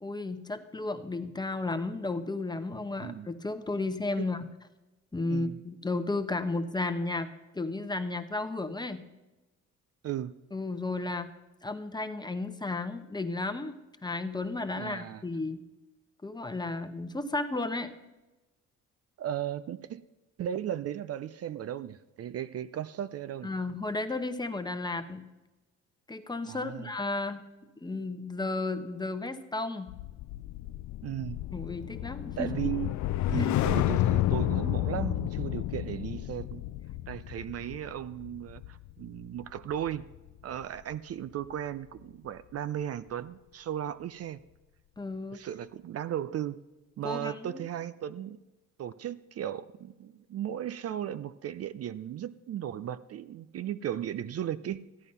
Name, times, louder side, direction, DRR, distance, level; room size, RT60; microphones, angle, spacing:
voice 1, 0.0-4.4 5.1-7.3 7.5-9.0 10.5-11.3 11.6-13.7 14.0-15.6 16.2-17.9 23.4-25.2 26.1-27.4 27.8-29.9 31.5-32.5 33.3-33.5 45.0-45.4 47.0-47.6, left 2 dB, 15° left, 1.0 m, -33 dB
voice 2, 3.0-3.3 4.2-4.3 5.3-5.6 10.0-10.4 14.7-15.2 19.2-20.0 20.4-23.5 26.5-26.9 31.0-31.4 32.4-32.9 33.3-36.6 37.1-40.1 40.4-44.4 45.3-46.6 47.0-48.4 48.8-54.8, right 10 dB, 55° right, 0.5 m, -36 dB
sound 1, 29.9-40.3 40.6-40.9, left 14 dB, 70° left, 0.4 m, -31 dB
14.0 x 9.2 x 5.5 m
cardioid pair, 90°, 30 cm